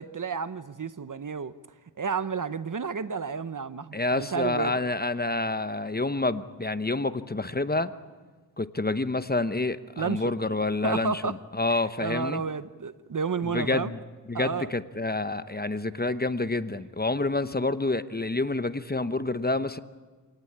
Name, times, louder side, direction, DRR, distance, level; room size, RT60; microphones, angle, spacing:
voice 1, 0.0-1.6 2.0-4.8 10.0-10.3 10.8-11.4 11.7-13.9 14.3-14.7, right 5 dB, 50° right, 0.9 m, -31 dB
voice 2, 3.9-7.9 8.6-12.4 13.5-14.0 14.3-19.8, left 2 dB, 25° left, 0.9 m, -28 dB
27.5 x 18.5 x 8.7 m
wide cardioid pair, 65°, 41 cm